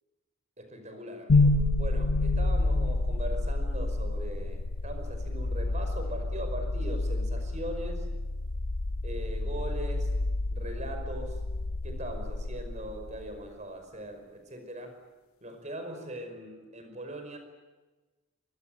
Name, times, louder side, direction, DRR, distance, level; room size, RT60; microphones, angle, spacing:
voice 1, 0.6-8.1 9.0-10.1 10.5-11.4 11.8-15.0 15.4-17.4, right 1 dB, 35° right, 6 dB, 5.2 m, -40 dB
sound 1, 1.3-13.4, left 2 dB, 80° left, 1.0 m, -29 dB
25.5 x 21.0 x 9.3 m, 1.2 s
head